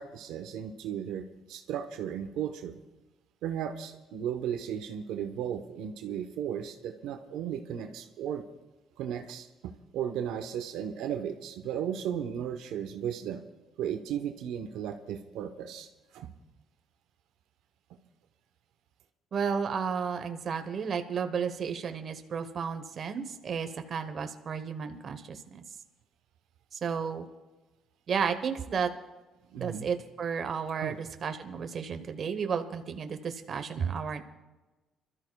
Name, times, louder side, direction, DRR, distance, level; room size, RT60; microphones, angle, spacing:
voice 1, 0.0-2.8 3.4-8.4 9.0-13.4 13.8-16.3 17.9-18.0 29.5-29.9 30.8-31.0, right 9 dB, 85° right, 6 dB, 1.0 m, -35 dB
voice 2, 19.3-25.4 26.8-27.3 28.1-28.9 29.6-34.2, right 6 dB, 45° right, 7 dB, 1.1 m, -32 dB
27.5 x 13.0 x 2.3 m, 1.1 s
cardioid pair, 125°, 0 cm